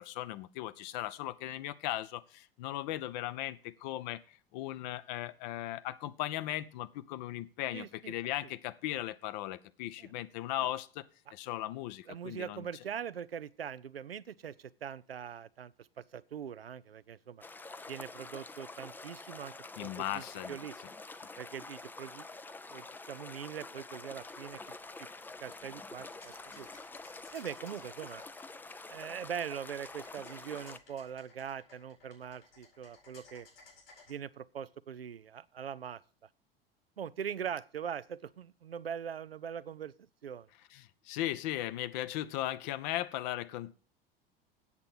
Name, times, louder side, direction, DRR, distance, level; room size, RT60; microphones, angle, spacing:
voice 1, 0.0-11.0 11.3-12.7 19.8-20.5 40.7-43.7, left 14 dB, 50° left, 0.7 m, -37 dB
voice 2, 7.7-8.1 8.4-8.5 10.0-10.1 12.1-17.4 17.9-19.5 19.8-20.7 21.4-22.3 22.7-24.6 25.4-26.7 27.3-28.2 28.9-33.5 34.1-36.0 37.0-39.9 40.2-40.5, right 8 dB, 85° right, 0.5 m, -42 dB
sound 1, 17.4-30.8, left 3 dB, 5° left, 0.4 m, -47 dB
sound 2, 24.1-34.1, left 4 dB, 75° left, 4.7 m, -59 dB
8.3 x 7.7 x 6.9 m
figure-of-eight pair, 75°, 29 cm